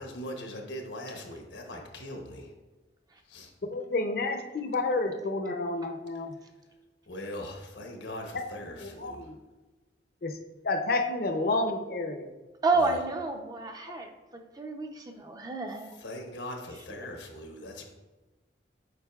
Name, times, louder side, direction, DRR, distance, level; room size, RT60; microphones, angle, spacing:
voice 1, 0.0-2.5 3.3-3.5 7.1-9.2 16.0-17.8, left 1 dB, 90° left, 2 dB, 1.1 m, -40 dB
voice 2, 3.7-6.3 8.3-9.4 10.2-10.4 10.6-12.3, left 2 dB, 55° left, 5 dB, 0.6 m, -30 dB
voice 3, 12.6-15.9 16.7-17.1, right 3 dB, 20° right, 4 dB, 0.5 m, -31 dB
8.1 x 5.1 x 2.3 m, 1.2 s
head